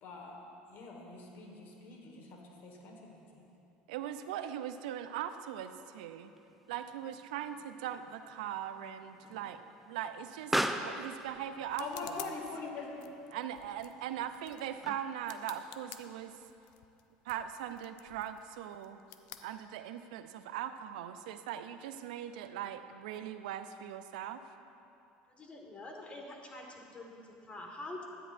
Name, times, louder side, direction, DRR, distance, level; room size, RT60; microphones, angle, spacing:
voice 1, 0.0-3.5 11.8-12.9, left 3 dB, 55° left, 1 dB, 1.5 m, -44 dB
voice 2, 3.9-6.3 6.7-12.3 13.3-16.4 17.2-19.0 19.4-24.4, right 10 dB, 85° right, 10 dB, 0.4 m, -40 dB
Explosion, 6.3-15.3, right 1 dB, 5° right, 0.4 m, -41 dB
sound 1, 10.4-20.2, left 11 dB, 80° left, 0.4 m, -54 dB
voice 3, 25.3-28.0, left 2 dB, 30° left, 1 dB, 1.5 m, -46 dB
12.5 x 8.8 x 2.5 m, 2.7 s
supercardioid pair, 100°, 4 cm